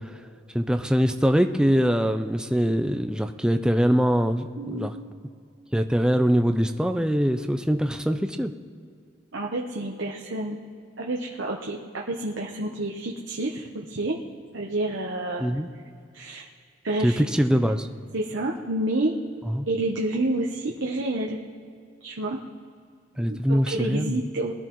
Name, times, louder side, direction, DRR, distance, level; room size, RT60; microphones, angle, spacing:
voice 1, 0.5-4.9 5.7-8.5 15.4-15.7 17.0-17.9 19.5-19.7 23.2-24.2, equal, 5° right, 7 dB, 0.5 m, -23 dB
voice 2, 4.6-5.0 9.3-10.6 11.0-14.2 14.5-15.4 16.1-16.4 16.8-17.2 17.5-17.6 18.1-19.1 19.7-21.4 22.0-22.4 23.3-24.5, right 2 dB, 80° right, -1 dB, 1.0 m, -29 dB
21.5 x 13.0 x 3.1 m, 2.4 s
head